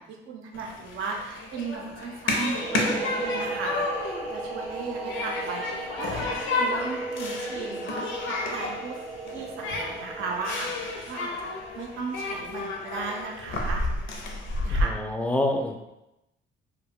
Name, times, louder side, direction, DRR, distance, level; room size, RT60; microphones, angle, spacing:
voice 1, 0.0-9.0 9.3-13.8 14.6-14.9, right 4 dB, 85° right, 1 dB, 0.6 m, -36 dB
Human group actions, 0.5-14.8, left 2 dB, 75° left, 0.5 m, -31 dB
sound 1, 2.5-12.0, right 3 dB, 40° right, 0.7 m, -36 dB
voice 2, 14.6-15.9, left 1 dB, 5° left, 4 dB, 0.3 m, -28 dB
2.4 x 2.2 x 3.5 m, 0.91 s
cardioid pair, 90°, 20 cm